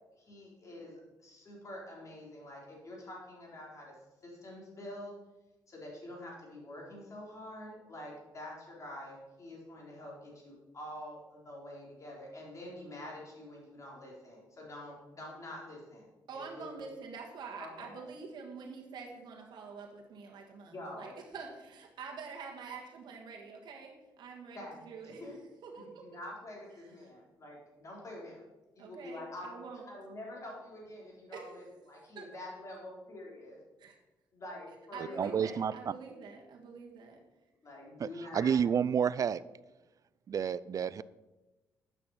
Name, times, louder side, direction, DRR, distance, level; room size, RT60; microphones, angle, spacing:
voice 1, 0.1-0.9 1.2-3.9 4.2-5.1 5.7-16.7 17.6-18.0 20.6-21.2 24.5-25.3 25.7-28.4 28.8-29.6 29.9-33.6 34.3-35.5 37.6-38.6, left 1 dB, 45° left, -2 dB, 3.8 m, -47 dB
voice 2, 16.3-24.6 24.8-25.2 25.6-26.1 28.8-29.9 31.3-31.5 32.1-32.3 33.8-33.9 34.9-37.2, right 5 dB, 70° right, 0 dB, 1.6 m, -46 dB
voice 3, 35.0-35.7 38.0-39.4 40.3-41.0, right 7 dB, 45° right, 18 dB, 0.4 m, -30 dB
9.0 x 6.1 x 5.7 m, 1.1 s
supercardioid pair, 70°, 8 cm